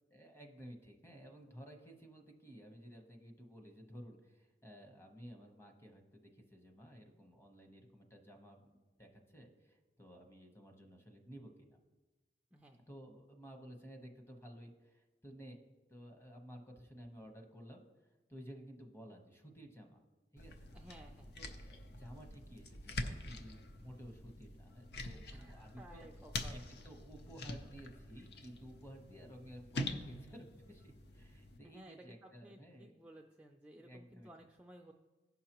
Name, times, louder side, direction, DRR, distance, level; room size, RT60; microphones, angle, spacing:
voice 1, 0.1-11.8 12.9-15.6 15.9-17.8 18.3-20.0 20.3-20.7 21.4-26.1 26.5-32.9 33.8-34.3, equal, 15° left, 3 dB, 1.0 m, -54 dB
sound 1, 20.4-31.6, left 2 dB, 60° left, 0.7 m, -46 dB
voice 2, 20.7-21.3 25.3-26.6 31.6-34.9, right 1 dB, 5° right, 2 dB, 0.3 m, -57 dB
15.5 x 5.6 x 2.9 m, 1.2 s
head